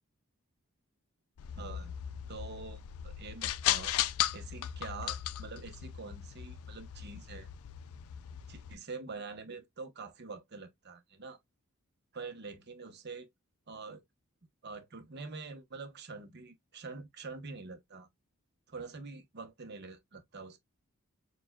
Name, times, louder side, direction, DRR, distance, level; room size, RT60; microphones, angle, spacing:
sound 1, 1.4-8.7, left 12 dB, 75° left, 0.3 m, -37 dB
voice 1, 1.5-1.9 2.3-3.9 4.3-7.5 8.5-11.4 12.1-13.3 13.7-14.0 14.6-18.1 18.7-20.6, right 4 dB, 50° right, 0.9 m, -45 dB
6.6 x 2.3 x 2.2 m
head